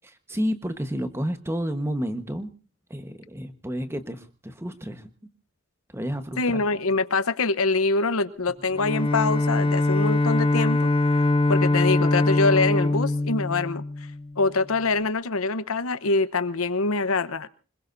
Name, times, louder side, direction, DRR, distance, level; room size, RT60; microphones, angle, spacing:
voice 1, 0.0-2.5 2.9-5.1 5.9-6.6, equal, 10° right, 9 dB, 1.2 m, -30 dB
voice 2, 6.4-10.9 11.5-13.8 14.4-17.5, left 3 dB, 85° left, 14 dB, 1.0 m, -24 dB
Bowed string instrument, 8.7-14.4, left 2 dB, 25° left, 1.2 m, -23 dB
26.0 x 21.0 x 2.6 m, 0.35 s
head